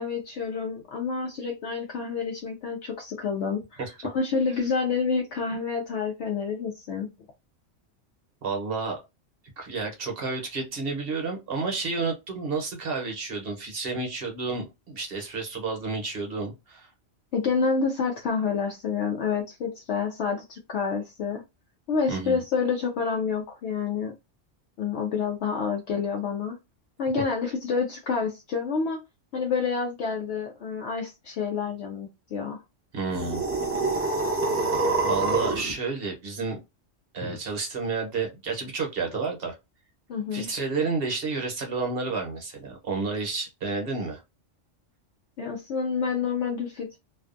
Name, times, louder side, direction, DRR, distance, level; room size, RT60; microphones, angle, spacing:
voice 1, 0.0-7.1 17.3-21.4 21.9-24.1 24.8-26.6 27.0-29.0 29.3-32.6 37.2-37.4 40.1-40.5 45.4-47.0, left 5 dB, 70° left, 0.8 m, -28 dB
voice 2, 8.4-9.0 9.6-16.9 22.1-22.4 32.9-33.4 35.0-36.6 37.1-39.5 40.3-44.2, right 4 dB, 55° right, 0.9 m, -30 dB
sound 1, 33.1-35.7, right 3 dB, 20° right, 0.4 m, -26 dB
2.5 x 2.3 x 2.4 m
omnidirectional pair, 1.3 m